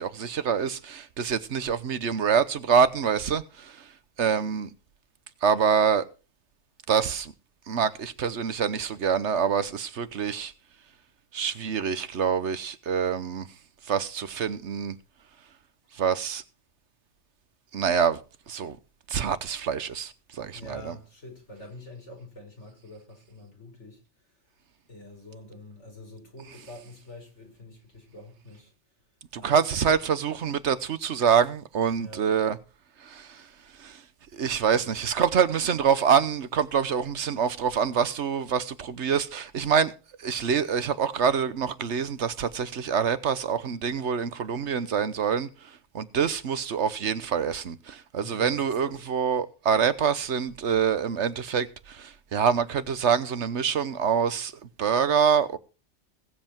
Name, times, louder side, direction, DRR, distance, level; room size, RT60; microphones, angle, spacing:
voice 1, 0.0-3.9 4.2-4.7 5.4-6.0 6.9-7.3 7.7-10.5 11.3-13.5 13.8-15.0 15.9-16.4 17.7-18.2 18.5-18.8 19.1-20.9 29.3-32.6 33.0-33.5 33.8-34.0 34.3-39.9 40.2-54.5 54.8-55.6, right 7 dB, 70° right, 1.2 m, -26 dB
voice 2, 20.5-24.5 24.9-28.7 29.3-29.9 32.0-32.3 48.2-49.0, left 2 dB, 75° left, 5.6 m, -46 dB
21.0 x 7.8 x 4.4 m
omnidirectional pair, 1.2 m